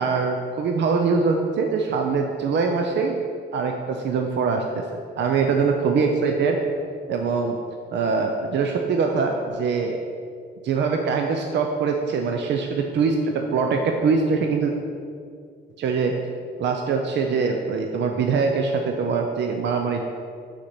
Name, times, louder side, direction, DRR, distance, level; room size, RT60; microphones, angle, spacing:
voice 1, 0.0-3.1 3.5-6.6 7.1-7.6 7.9-10.0 10.6-13.1 13.5-14.7 15.8-16.1 16.6-20.0, right 5 dB, 65° right, 3 dB, 0.6 m, -23 dB
5.9 x 4.2 x 6.0 m, 2.2 s
cardioid pair, 90°, 20 cm